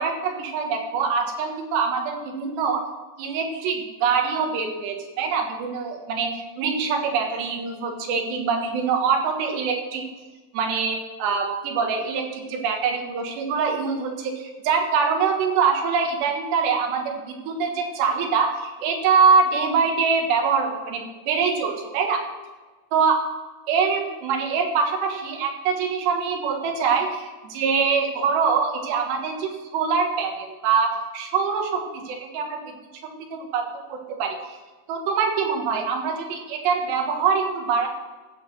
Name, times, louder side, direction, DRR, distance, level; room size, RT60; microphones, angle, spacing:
voice 1, 0.0-2.9 3.2-10.0 10.5-22.2 22.9-23.3 23.7-32.6 33.3-34.6 34.9-37.9, right 5 dB, 85° right, 3 dB, 3.7 m, -24 dB
14.5 x 6.6 x 6.2 m, 1.3 s
omnidirectional pair, 4.8 m